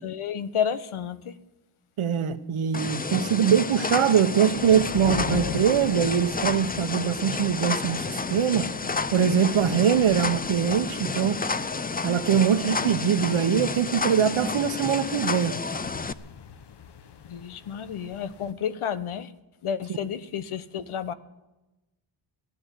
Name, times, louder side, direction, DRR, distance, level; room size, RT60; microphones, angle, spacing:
voice 1, 0.0-1.3 17.2-19.3 19.6-21.1, left 8 dB, 80° left, 13 dB, 1.1 m, -31 dB
voice 2, 2.0-8.7 9.1-11.4 12.0-15.6, right 8 dB, 80° right, 11 dB, 1.2 m, -23 dB
sound 1, 2.7-16.1, left 4 dB, 20° left, 0.5 m, -30 dB
sound 2, 4.5-18.5, left 7 dB, 55° left, 1.0 m, -41 dB
16.0 x 10.5 x 8.4 m, 1.0 s
wide cardioid pair, 125°, 49 cm